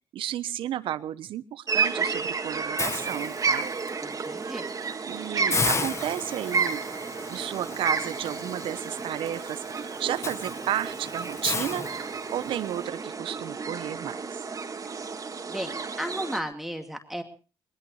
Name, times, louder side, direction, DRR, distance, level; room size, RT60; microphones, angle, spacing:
voice 1, 0.1-3.7 5.1-6.8 7.3-14.4, right 11 dB, 75° right, 15 dB, 0.9 m, -33 dB
sound 1, 1.7-16.4, right 5 dB, 40° right, 2.3 m, -32 dB
Hiss, 2.8-3.9 4.4-4.6 4.9-5.0 5.5-12.6, left 4 dB, 30° left, 1.5 m, -34 dB
voice 2, 4.0-4.7 14.9-15.0 15.5-17.2, equal, 5° right, 4 dB, 2.3 m, -34 dB
22.0 x 20.0 x 3.1 m, 0.35 s
supercardioid pair, 65°, 9 cm